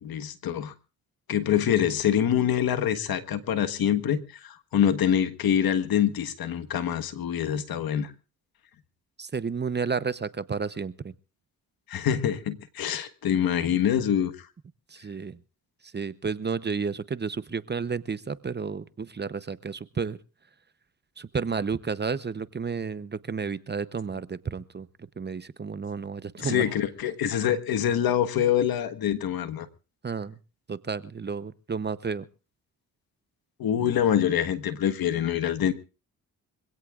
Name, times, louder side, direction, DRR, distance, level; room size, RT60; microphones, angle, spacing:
voice 1, 0.0-0.7 1.3-8.1 11.9-14.3 26.4-29.7 33.6-35.7, left 9 dB, 70° left, 1.5 m, -25 dB
voice 2, 9.2-11.1 14.9-15.4 15.9-20.2 21.2-24.9 25.2-26.6 30.0-30.3 30.7-32.2, right 5 dB, 30° right, 0.8 m, -31 dB
25.0 x 17.0 x 2.5 m
cardioid pair, 65°, 37 cm